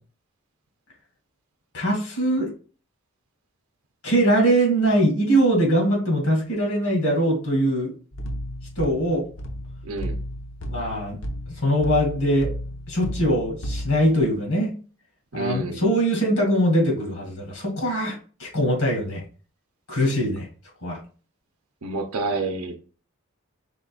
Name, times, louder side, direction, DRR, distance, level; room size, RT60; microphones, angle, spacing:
voice 1, 1.7-2.5 4.0-7.9 8.8-9.2 10.7-11.2 11.6-12.5 12.9-14.7 15.3-19.2 19.9-20.5 20.8-21.0, right 1 dB, 75° left, 2.2 m, -22 dB
sound 1, 8.1-14.2, equal, 55° left, 0.8 m, -33 dB
voice 2, 9.8-10.2 15.3-15.9 21.8-22.8, right 3 dB, 80° right, 0.7 m, -28 dB
5.2 x 4.0 x 2.3 m
head